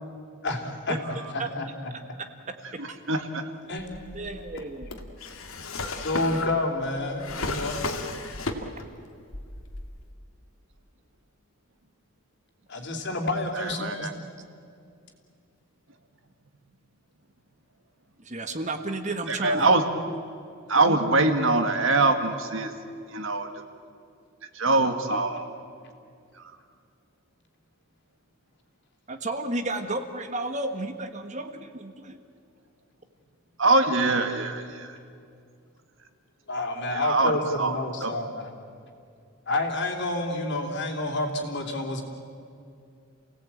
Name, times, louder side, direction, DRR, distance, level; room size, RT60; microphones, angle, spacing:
voice 1, 0.4-1.9 3.7-3.9 4.5-4.6 5.9-7.8 12.7-14.1 36.5-38.5 39.5-42.0, left 2 dB, 55° left, 3 dB, 3.3 m, -29 dB
voice 2, 2.6-3.4 13.6-14.1 19.3-19.9 20.7-22.7 23.1-23.5 24.6-25.4 33.6-35.0 36.9-37.3 37.6-37.8 38.0-38.1, right 3 dB, 65° right, 6 dB, 1.9 m, -23 dB
Drawer open or close, 3.8-9.0 9.3-10.1, left 3 dB, 80° left, 2.2 m, -34 dB
voice 3, 4.1-4.9 18.2-19.7 20.7-21.0 29.1-32.2, right 2 dB, 35° right, 7 dB, 1.5 m, -32 dB
29.0 x 18.0 x 8.8 m, 2.4 s
head